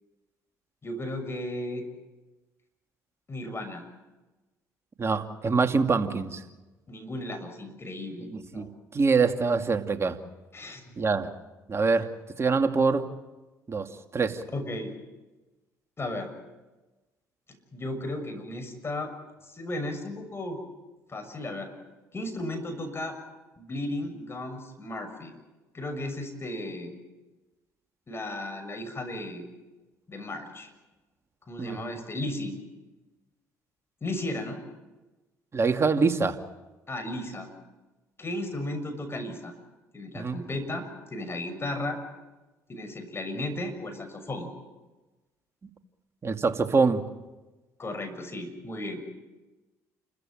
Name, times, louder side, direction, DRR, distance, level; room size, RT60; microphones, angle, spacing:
voice 1, 0.8-1.8 3.3-3.8 6.9-8.7 10.5-10.8 14.5-14.9 16.0-16.3 17.7-19.1 19.4-20.6 21.1-21.7 22.1-23.1 23.6-25.3 25.7-26.9 28.1-29.4 30.1-30.7 31.5-32.6 34.0-34.6 36.9-37.5 38.2-39.5 39.9-42.0 42.7-44.5 47.8-49.0, left 1 dB, 30° left, 6 dB, 6.4 m, -35 dB
voice 2, 5.0-6.4 8.3-10.2 11.0-11.3 11.7-12.1 12.4-13.1 13.7-14.4 31.6-31.8 35.5-36.4 40.1-40.4 46.2-47.1, right 4 dB, 35° right, 6 dB, 2.5 m, -25 dB
29.0 x 14.5 x 9.1 m, 1.1 s
hypercardioid pair, 60°, 8 cm